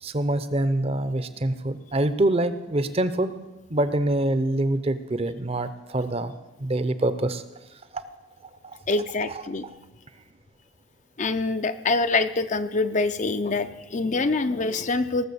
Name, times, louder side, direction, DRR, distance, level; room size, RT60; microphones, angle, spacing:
voice 1, 0.0-3.3 3.7-6.3 6.6-7.4 8.6-8.8 9.3-9.4, right 1 dB, 30° right, 12 dB, 0.6 m, -25 dB
voice 2, 8.9-9.6 11.2-15.2, left 3 dB, 35° left, 10 dB, 0.5 m, -25 dB
18.0 x 7.1 x 6.9 m, 1.1 s
head